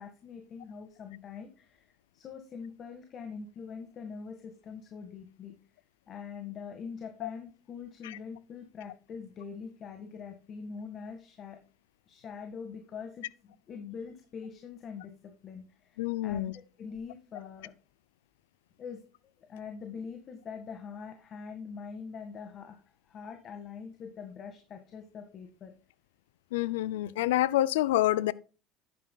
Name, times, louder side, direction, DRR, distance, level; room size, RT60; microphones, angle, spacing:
voice 1, 0.0-5.5 6.1-11.6 12.1-17.7 18.8-19.0 19.5-25.7, left 6 dB, 45° left, 1.8 m, -43 dB
voice 2, 16.0-16.5 26.5-28.3, left 15 dB, 90° left, 0.5 m, -27 dB
11.0 x 9.2 x 2.3 m
supercardioid pair, 90°, 0 cm